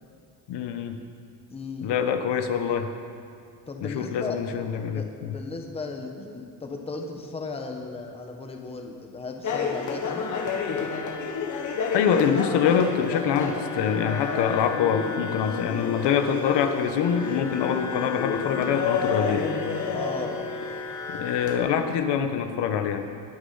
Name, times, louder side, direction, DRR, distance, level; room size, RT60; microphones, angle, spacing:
voice 1, 0.5-1.0 1.8-2.9 3.8-5.3 11.9-19.5 21.1-23.0, left 7 dB, 65° left, 6 dB, 1.3 m, -25 dB
voice 2, 1.5-1.9 3.7-4.4 4.9-10.3 19.9-20.5, left 3 dB, 15° left, 3 dB, 1.0 m, -36 dB
sound 1, 9.4-21.6, left 5 dB, 45° left, 1.7 m, -30 dB
20.5 x 10.0 x 5.7 m, 2.3 s
cardioid pair, 170°, 44 cm